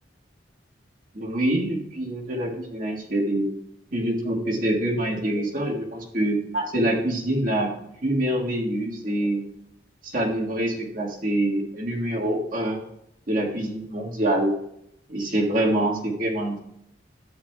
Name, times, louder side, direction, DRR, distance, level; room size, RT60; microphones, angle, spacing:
voice 1, 1.1-3.5 3.9-7.7 8.0-9.4 10.0-12.8 13.3-14.6 15.1-16.6, right 1 dB, 45° right, -2 dB, 1.8 m, -25 dB
12.5 x 9.0 x 2.4 m, 0.76 s
head